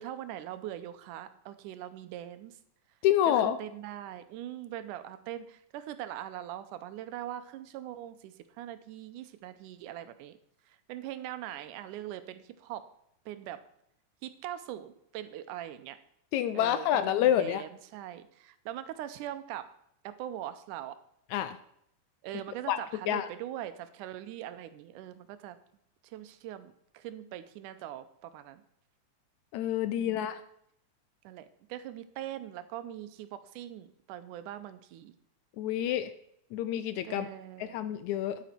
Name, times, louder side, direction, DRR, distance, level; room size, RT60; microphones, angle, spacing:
voice 1, 0.0-2.6 3.3-10.4 10.7-12.9 13.3-13.6 14.2-16.0 16.5-19.7 20.0-21.0 22.2-25.6 26.0-28.6 30.0-30.3 31.2-35.1 37.0-37.8, right 12 dB, 85° right, 12 dB, 2.2 m, -42 dB
voice 2, 3.0-3.6 16.3-17.6 21.3-21.6 22.7-22.8 23.1-23.3 29.5-30.4 35.6-36.1 36.5-37.3 37.6-38.4, left 11 dB, 80° left, 12 dB, 1.8 m, -28 dB
9.5 x 9.1 x 4.4 m, 0.71 s
omnidirectional pair, 3.6 m